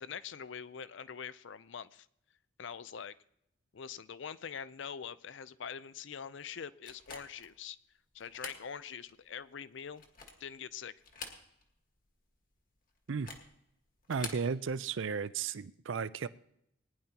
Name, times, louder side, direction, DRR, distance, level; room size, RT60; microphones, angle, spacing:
voice 1, 0.0-2.1 2.6-3.1 3.7-7.8 8.1-10.0 10.4-10.9, left 7 dB, 65° left, 16 dB, 0.5 m, -44 dB
sound 1, 6.8-7.5 8.2-8.7 9.1-9.2 9.9-10.5 11.0-11.8 12.1-12.2 13.1-13.5 14.0-14.5, left 4 dB, 45° left, 1.6 m, -46 dB
voice 2, 14.1-16.3, right 5 dB, 70° right, 16 dB, 0.5 m, -34 dB
20.0 x 10.5 x 2.9 m, 0.74 s
head